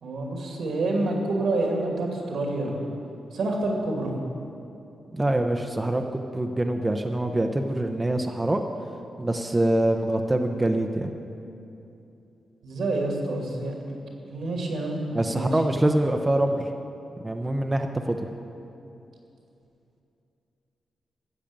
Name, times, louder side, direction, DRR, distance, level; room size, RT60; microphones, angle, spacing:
voice 1, 0.0-2.8 3.3-4.1 12.6-14.0 14.3-15.0 15.3-15.5, right 2 dB, 75° right, 0 dB, 2.5 m, -28 dB
voice 2, 5.1-8.6 9.2-11.1 15.1-16.7 17.2-18.2, right 1 dB, 15° right, 4 dB, 0.6 m, -24 dB
13.5 x 7.4 x 8.8 m, 2.8 s
wide cardioid pair, 120°, 0 cm